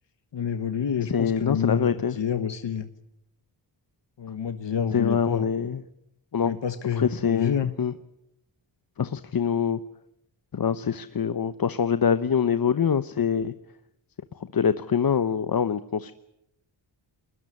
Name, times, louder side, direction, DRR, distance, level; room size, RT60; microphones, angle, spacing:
voice 1, 0.3-2.9 4.2-5.5 6.4-7.7, left 7 dB, 65° left, 10 dB, 1.4 m, -28 dB
voice 2, 1.1-2.2 4.9-5.8 6.3-6.5 7.0-7.9 9.0-9.8 10.5-13.5 14.5-16.1, left 7 dB, 50° left, 13 dB, 1.0 m, -24 dB
22.0 x 20.5 x 9.8 m, 0.81 s
cardioid pair, 70°, 46 cm